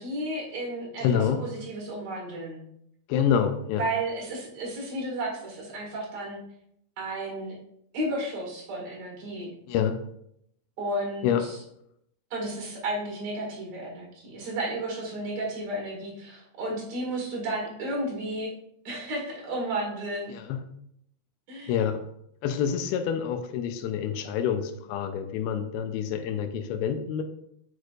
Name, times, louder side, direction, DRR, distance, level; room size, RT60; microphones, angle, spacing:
voice 1, 0.0-2.6 3.8-6.4 7.0-7.5 7.9-9.6 10.8-11.6 12.3-18.5 18.8-20.3 21.5-21.7, right 1 dB, 55° right, -2 dB, 2.9 m, -33 dB
voice 2, 1.0-1.5 3.1-3.8 9.7-10.0 11.2-11.4 20.3-20.7 21.7-22.0 22.4-27.2, left 8 dB, 85° left, 8 dB, 2.5 m, -27 dB
6.4 x 6.4 x 2.4 m, 0.74 s
omnidirectional pair, 4.3 m